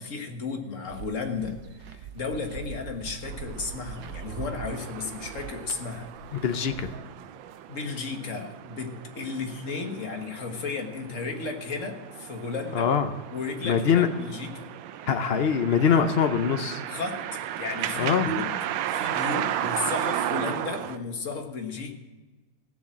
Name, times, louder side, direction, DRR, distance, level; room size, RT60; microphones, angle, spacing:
voice 1, 0.0-6.4 7.7-12.9 13.3-14.7 16.9-18.6 18.9-21.9, left 4 dB, 45° left, 4 dB, 1.7 m, -34 dB
sound 1, 0.9-6.9, right 7 dB, 70° right, 1.4 m, -42 dB
sound 2, 3.3-21.0, right 11 dB, 85° right, 1.4 m, -35 dB
voice 2, 6.3-6.9 12.7-13.1 13.6-14.1 15.0-16.8 18.0-18.3, left 7 dB, 80° left, 8 dB, 0.5 m, -23 dB
16.0 x 7.2 x 7.4 m, 1.2 s
omnidirectional pair, 2.1 m